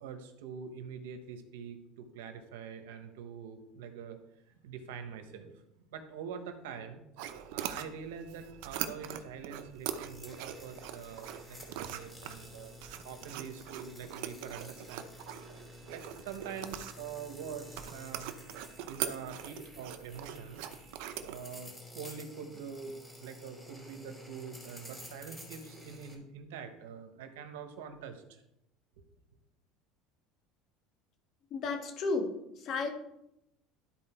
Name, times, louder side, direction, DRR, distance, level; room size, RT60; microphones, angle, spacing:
voice 1, 0.0-4.2 4.4-7.0 7.5-12.8 13.0-15.1 15.9-18.3 18.9-20.6 21.2-22.9 23.2-28.4, right 6 dB, 90° right, 7 dB, 1.2 m, -45 dB
sound 1, 7.2-21.4, right 10 dB, 75° right, 0.8 m, -42 dB
sound 2, 9.7-26.1, left 1 dB, 10° left, 3.1 m, -52 dB
voice 2, 31.5-32.9, left 3 dB, 50° left, 4 dB, 1.7 m, -33 dB
12.5 x 4.3 x 4.5 m, 0.84 s
supercardioid pair, 115°, 0 cm